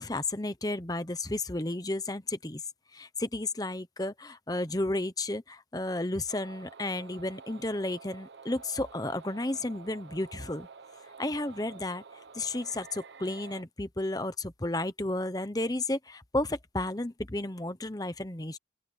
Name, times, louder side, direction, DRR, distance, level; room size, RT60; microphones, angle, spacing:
voice 1, 0.0-2.6 2.9-10.7 11.2-12.0 12.3-18.6, left 2 dB, 20° left, 1.0 m, -32 dB
sound 1, 6.3-13.6, right 5 dB, 75° right, 1.0 m, -50 dB
open air
head